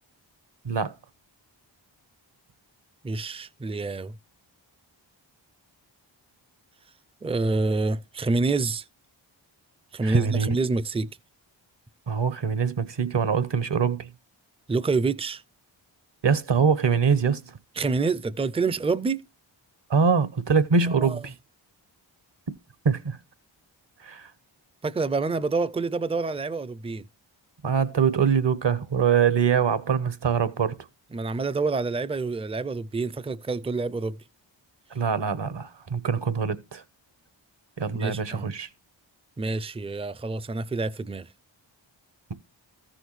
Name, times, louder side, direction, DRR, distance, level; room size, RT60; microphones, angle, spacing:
voice 1, 3.0-4.1 7.2-8.8 9.9-11.2 14.7-15.4 17.8-19.2 20.9-21.2 24.8-27.1 31.1-34.2 37.9-38.5 39.4-41.3, right 3 dB, 15° right, 0.4 m, -27 dB
voice 2, 10.0-10.6 12.1-14.1 16.2-17.4 19.9-21.3 22.8-23.2 24.0-24.3 27.6-30.8 34.9-36.8 37.8-38.7, right 6 dB, 65° right, 1.0 m, -23 dB
14.0 x 6.3 x 3.2 m
wide cardioid pair, 50°, 46 cm